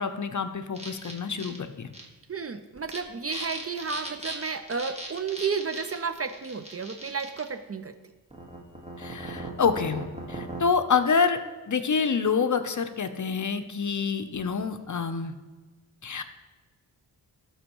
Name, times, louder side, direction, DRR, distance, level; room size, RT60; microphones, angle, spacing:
voice 1, 0.0-1.9 3.3-3.4 9.0-11.4 11.7-15.3 16.0-16.2, left 5 dB, 45° left, 9 dB, 0.6 m, -27 dB
sound 1, 0.7-1.6 1.9-2.0 2.8-3.0 3.3-7.5 8.3-10.6, right 2 dB, 15° right, 1.4 m, -38 dB
voice 2, 2.3-7.9, right 5 dB, 35° right, 10 dB, 0.4 m, -32 dB
12.5 x 4.2 x 3.0 m, 1.3 s
cardioid pair, 40°, 42 cm